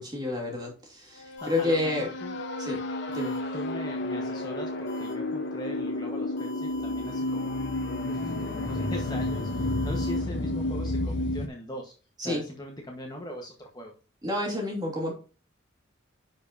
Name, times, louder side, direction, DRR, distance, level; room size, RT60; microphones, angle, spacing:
voice 1, 0.0-2.1 2.6-2.8 3.1-3.4 12.2-12.4 14.2-15.1, left 2 dB, 20° right, -1 dB, 2.7 m, -29 dB
sound 1, 1.2-11.5, left 1 dB, 55° left, 0.9 m, -31 dB
sound 2, 1.4-1.6 3.1-3.4 4.9-5.1 6.4-10.2, left 6 dB, 40° left, 4.5 m, -45 dB
voice 2, 1.4-2.4 3.5-7.6 8.1-11.9 12.2-13.9, left 1 dB, 20° left, 1 dB, 1.2 m, -40 dB
10.5 x 5.2 x 2.6 m, 0.34 s
head